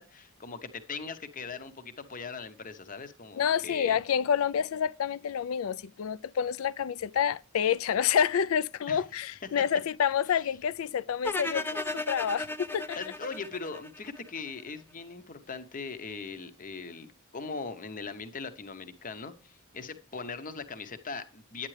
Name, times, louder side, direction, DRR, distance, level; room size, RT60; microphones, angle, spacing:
voice 1, 0.0-4.0 8.9-9.0 10.3-10.4 12.9-21.7, left 4 dB, 40° left, 0.8 m, -40 dB
voice 2, 3.4-13.0, left 8 dB, 70° left, 0.4 m, -28 dB
sound 1, 11.2-14.4, left 2 dB, 10° left, 0.5 m, -35 dB
9.6 x 8.8 x 3.2 m
head